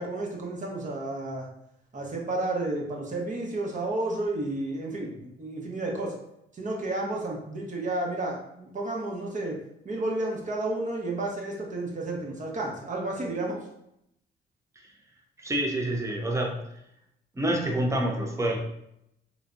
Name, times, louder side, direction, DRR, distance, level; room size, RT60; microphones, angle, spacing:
voice 1, 0.0-1.5 1.9-6.1 6.5-9.6 9.8-13.6, right 2 dB, 40° right, -1 dB, 1.0 m, -31 dB
voice 2, 15.4-16.6 17.4-18.6, right 1 dB, 15° right, 1 dB, 0.7 m, -27 dB
3.3 x 3.2 x 2.5 m, 0.78 s
cardioid pair, 90°, 20 cm